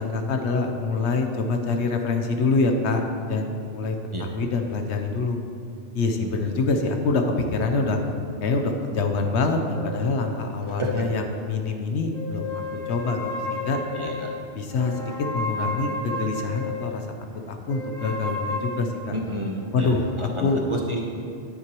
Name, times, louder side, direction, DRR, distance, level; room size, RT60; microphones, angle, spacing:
voice 1, 0.0-3.0 3.3-5.4 5.9-8.0 8.4-13.8 14.6-17.0 17.5-19.1 19.7-20.0 20.4-20.6, left 3 dB, 80° left, 4 dB, 1.1 m, -25 dB
voice 2, 6.2-6.6 10.7-11.1 13.9-14.3 19.1-21.1, right 1 dB, 30° right, 0 dB, 0.8 m, -31 dB
sound 1, 9.7-11.7 12.1-17.0 17.7-20.3, left 2 dB, 5° left, 0.9 m, -34 dB
9.8 x 9.7 x 3.0 m, 2.4 s
omnidirectional pair, 1.1 m